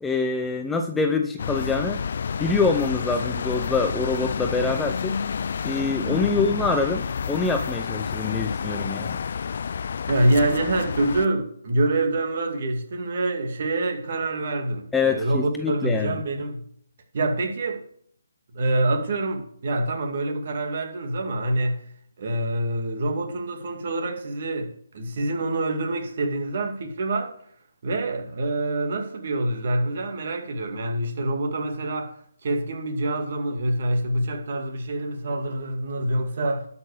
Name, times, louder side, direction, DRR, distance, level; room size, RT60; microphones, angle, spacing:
voice 1, 0.0-2.0 2.4-5.1 5.6-9.2 14.9-16.2, left 4 dB, 5° left, 0.6 m, -25 dB
sound 1, 1.4-11.3, left 6 dB, 55° left, 0.3 m, -29 dB
voice 2, 6.1-6.4 10.1-16.6 17.1-17.8 18.5-21.8 22.2-27.3 27.8-32.1 32.4-36.7, right 2 dB, 50° right, 2.3 m, -26 dB
12.0 x 6.0 x 6.6 m
hypercardioid pair, 155°, 0 cm